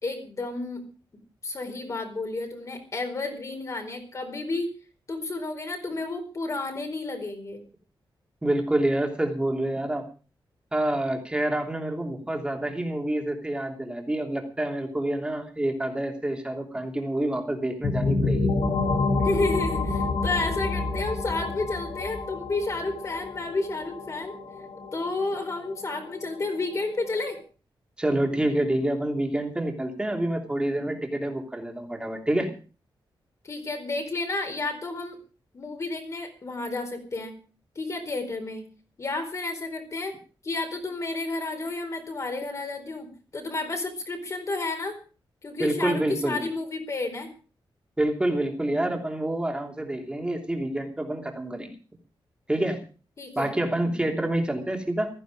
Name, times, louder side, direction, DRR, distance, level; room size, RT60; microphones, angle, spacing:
voice 1, 0.0-0.8 1.4-4.7 5.1-7.6 19.2-24.3 24.9-27.4 33.4-35.2 35.5-37.3 37.8-38.6 39.0-40.1 40.4-43.1 43.3-44.9 45.4-47.3 53.2-53.5, left 3 dB, 35° left, 5 dB, 4.4 m, -31 dB
voice 2, 8.4-10.0 10.7-18.5 28.0-32.5 45.6-46.4 48.0-51.7 52.5-52.8 53.3-55.1, right 1 dB, 10° right, 3 dB, 3.1 m, -27 dB
sound 1, 17.8-27.4, left 3 dB, 75° left, 4.3 m, -29 dB
15.5 x 14.5 x 5.0 m, 0.37 s
wide cardioid pair, 155°, 9 cm